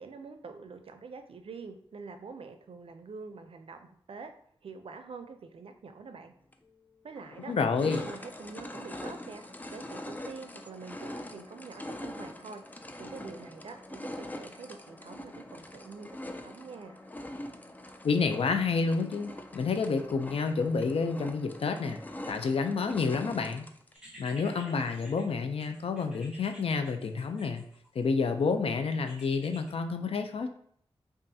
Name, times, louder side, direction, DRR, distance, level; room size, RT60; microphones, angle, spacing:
voice 1, 0.0-4.3 4.6-6.3 7.0-7.5 7.8-9.4 9.7-12.6 13.0-17.0, right 4 dB, 75° right, 7 dB, 0.5 m, -45 dB
sound 1, 6.5-6.6 7.2-24.0, left 1 dB, 15° left, 0.4 m, -43 dB
voice 2, 7.5-8.0 18.0-22.0 22.3-23.7 24.2-27.6 27.9-30.5, left 4 dB, 85° left, 7 dB, 0.4 m, -29 dB
sound 2, 23.9-28.1 29.1-29.7, equal, 10° right, 1.1 m, -51 dB
5.4 x 2.5 x 2.7 m, 0.64 s
wide cardioid pair, 105°, 10 cm